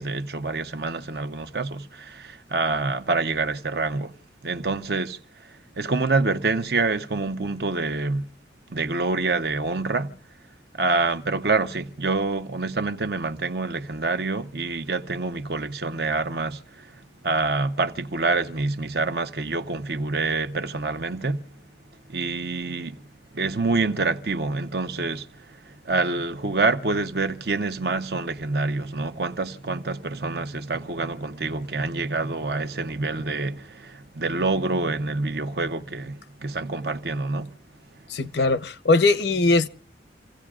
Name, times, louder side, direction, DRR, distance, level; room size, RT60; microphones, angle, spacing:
voice 1, 0.0-4.1 4.4-5.2 5.8-8.3 8.7-10.1 10.7-16.9 17.2-21.4 22.1-23.0 23.3-25.6 25.8-37.5, right 3 dB, 65° right, 0.9 m, -26 dB
voice 2, 38.1-39.7, left 3 dB, 75° left, 0.7 m, -20 dB
28.5 x 16.5 x 2.4 m
head